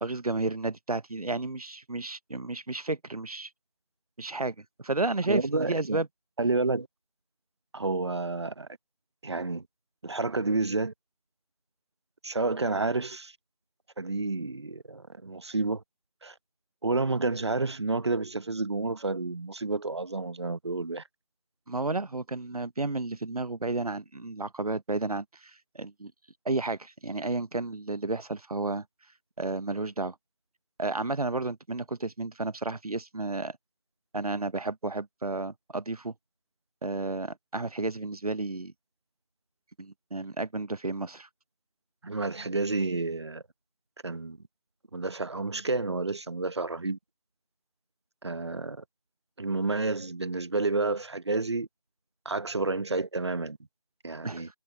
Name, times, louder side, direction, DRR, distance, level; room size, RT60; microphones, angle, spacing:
voice 1, 0.0-3.5 4.2-6.1 21.7-26.1 26.4-28.8 29.4-30.1 30.8-33.6 34.1-36.1 36.8-38.7 39.8-41.3 54.2-54.5, right 2 dB, 85° right, 1.1 m, -32 dB
voice 2, 5.3-6.0 6.4-6.9 7.7-8.7 9.2-9.6 10.0-10.9 12.2-13.4 14.0-15.8 16.2-16.3 16.8-21.0 42.0-43.4 44.0-44.4 44.9-47.0 48.2-48.8 49.4-51.7 52.2-53.6 54.0-54.5, right 3 dB, 50° right, 1.2 m, -30 dB
figure-of-eight pair, 170°, 19 cm